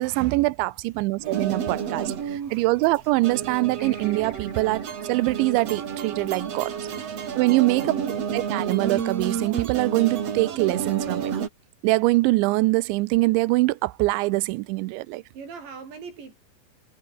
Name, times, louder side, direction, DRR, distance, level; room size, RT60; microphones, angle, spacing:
voice 1, 0.0-6.7 7.4-7.9 8.3-11.3 11.8-15.2, right 21 dB, 85° right, 3.0 m, -23 dB
sound 1, 1.2-11.5, right 7 dB, 45° right, 2.6 m, -30 dB
sound 2, 3.8-6.8, left 3 dB, 40° left, 7.8 m, -52 dB
voice 2, 7.6-8.3 15.3-16.4, right 5 dB, 70° right, 8.4 m, -40 dB
omnidirectional pair, 5.2 m